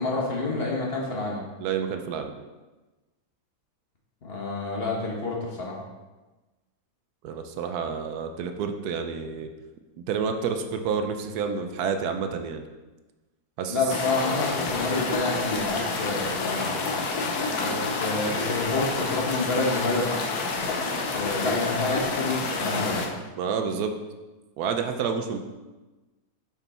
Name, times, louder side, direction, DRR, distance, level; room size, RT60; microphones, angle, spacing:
voice 1, 0.0-1.4 4.2-5.7 13.7-16.7 17.4-20.2 21.1-23.0, left 3 dB, 40° left, -2 dB, 1.3 m, -28 dB
voice 2, 1.6-2.3 7.2-9.5 10.1-12.6 13.6-13.8 23.4-23.9 24.6-25.4, right 6 dB, 80° right, 6 dB, 1.2 m, -29 dB
sound 1, 13.9-23.1, left 3 dB, 80° left, 1.4 m, -28 dB
6.0 x 5.3 x 4.2 m, 1.2 s
omnidirectional pair, 1.6 m